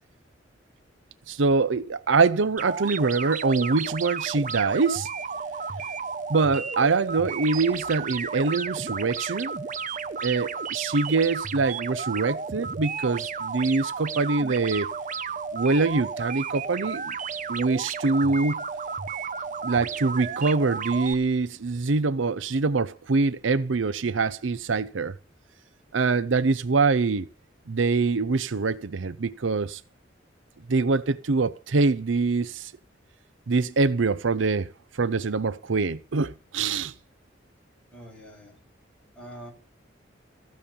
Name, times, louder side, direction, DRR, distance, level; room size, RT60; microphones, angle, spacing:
voice 1, 1.3-5.1 6.3-9.5 10.2-14.9 15.5-17.1 17.5-18.6 19.6-25.2 25.9-27.3 27.7-29.8 30.7-32.7 33.5-36.9, right 4 dB, 80° right, 0.7 m, -24 dB
sound 1, 2.6-21.1, right 5 dB, 45° right, 0.9 m, -33 dB
voice 2, 37.9-38.6 39.2-39.5, equal, 5° left, 7.1 m, -44 dB
15.5 x 7.1 x 7.0 m
head